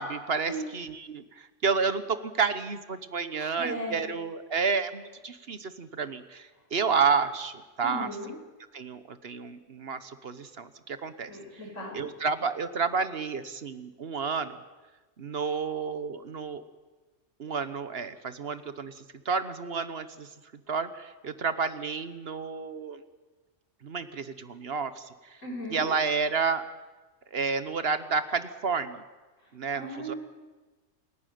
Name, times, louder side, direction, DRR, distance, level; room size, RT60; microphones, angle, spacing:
voice 1, 0.0-8.1 8.7-11.3 11.9-14.6 15.2-16.6 17.4-20.3 20.7-23.0 23.8-25.4 25.7-26.6 27.3-29.0 29.5-30.1, right 5 dB, 55° right, 12 dB, 1.2 m, -30 dB
voice 2, 3.4-4.1 7.8-8.3 11.3-12.0 25.4-25.8 29.4-30.2, right 1 dB, 85° left, 0 dB, 6.6 m, -37 dB
27.5 x 11.5 x 9.3 m, 1.2 s
omnidirectional pair, 1.3 m